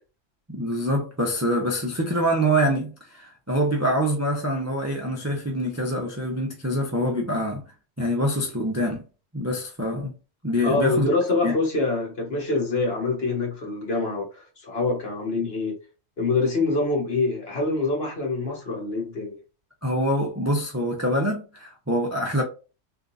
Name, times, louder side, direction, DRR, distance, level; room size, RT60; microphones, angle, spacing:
voice 1, 0.5-7.6 8.0-9.0 9.3-10.1 10.4-11.1 11.4-11.5 19.8-22.4, equal, 20° right, 0.4 m, -25 dB
voice 2, 10.6-15.8 16.2-19.4, left 3 dB, 50° left, 1.5 m, -25 dB
3.7 x 2.7 x 2.5 m
omnidirectional pair, 1.3 m